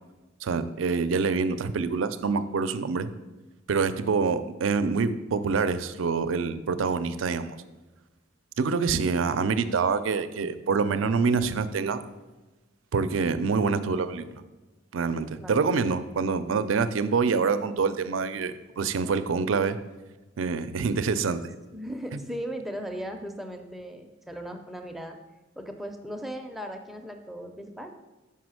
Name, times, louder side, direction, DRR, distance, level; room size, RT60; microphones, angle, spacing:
voice 1, 0.4-3.1 3.7-7.6 8.6-12.0 12.9-14.3 14.9-19.8 20.4-21.5, right 5 dB, 80° right, 12 dB, 0.4 m, -26 dB
voice 2, 21.7-25.2 25.6-27.9, equal, ahead, 4 dB, 0.5 m, -37 dB
5.6 x 5.1 x 6.2 m, 1.1 s
head